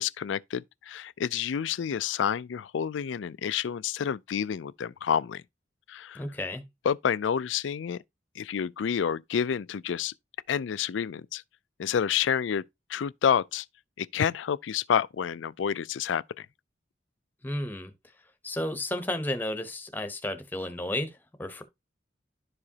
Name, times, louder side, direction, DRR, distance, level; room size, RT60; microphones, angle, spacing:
voice 1, 0.0-5.4 5.9-6.2 6.8-8.0 8.4-10.1 10.5-11.4 11.8-12.6 12.9-13.7 14.0-16.5, left 8 dB, 85° left, 0.4 m, -29 dB
voice 2, 6.1-6.6 17.4-17.9 18.4-21.6, left 1 dB, 10° left, 0.9 m, -32 dB
11.5 x 4.9 x 2.8 m
head